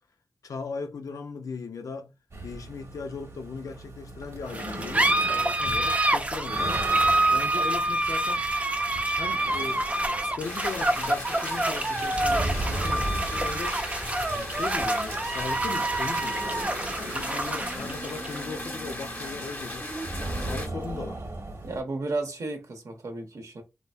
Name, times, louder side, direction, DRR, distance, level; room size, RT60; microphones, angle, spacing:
voice 1, 0.4-2.1 2.4-6.9 7.3-8.5 9.1-9.9 10.2-13.8 14.3-16.5 17.0-19.9 20.3-21.2, left 4 dB, 85° left, 0.4 m, -38 dB
sound 1, 2.3-21.8, right 2 dB, 60° right, 1.2 m, -38 dB
sound 2, 4.5-21.5, right 2 dB, 25° right, 0.5 m, -27 dB
sound 3, 10.4-20.7, left 1 dB, 40° left, 1.0 m, -38 dB
voice 2, 21.6-23.6, right 2 dB, 75° right, 0.9 m, -33 dB
3.3 x 2.9 x 2.4 m
wide cardioid pair, 65°, 6 cm